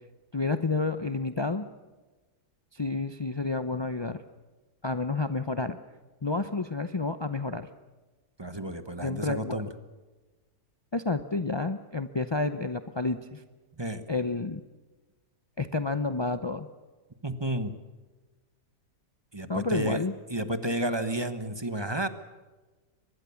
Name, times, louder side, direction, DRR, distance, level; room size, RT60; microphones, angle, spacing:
voice 1, 0.3-1.7 2.7-4.2 4.8-5.8 6.2-7.7 9.0-9.6 10.9-13.4 14.1-14.6 15.6-16.7 19.5-20.1, left 3 dB, 45° left, 10 dB, 0.3 m, -30 dB
voice 2, 8.4-9.7 13.8-14.0 17.2-17.7 19.3-20.0 20.3-22.1, right 1 dB, 20° right, 10 dB, 1.1 m, -31 dB
24.0 x 21.0 x 7.1 m, 1.2 s
omnidirectional pair, 1.7 m